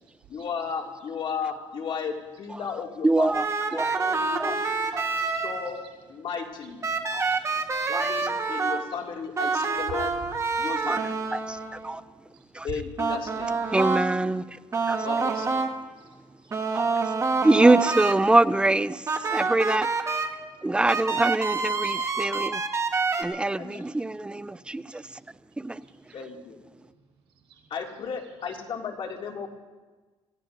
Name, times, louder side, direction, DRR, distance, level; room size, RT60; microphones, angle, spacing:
voice 1, 0.3-3.3 3.7-4.9 5.4-5.8 6.1-6.9 7.9-10.1 10.6-11.2 12.6-13.6 15.0-15.7 23.6-23.8 26.1-26.6 27.7-29.5, left 6 dB, 55° left, 2.4 m, -34 dB
voice 2, 3.0-3.5 3.7-4.0 4.4-4.6 4.9-5.0 7.1-7.3 7.9-8.1 10.9-11.0 11.3-11.6 11.8-12.0 12.5-12.7 13.7-14.6 14.9-15.0 16.7-16.8 17.4-19.9 20.6-22.6 23.2-25.2 25.6-25.8, right 2 dB, 10° right, 0.4 m, -24 dB
sound 1, 3.3-5.9 6.8-8.8 9.4-12.0 13.0-14.1 14.7-15.7 16.5-18.1 19.1-20.3 20.9-23.2, right 4 dB, 30° right, 1.4 m, -27 dB
voice 3, 4.2-5.4 7.3-7.7 16.0-16.1 16.4-16.7 22.9-23.0 23.7-23.8 24.9-25.0 25.8-26.2 27.5-27.6, right 6 dB, 70° right, 5.3 m, -58 dB
27.0 x 16.5 x 2.6 m
cardioid pair, 110°, 11 cm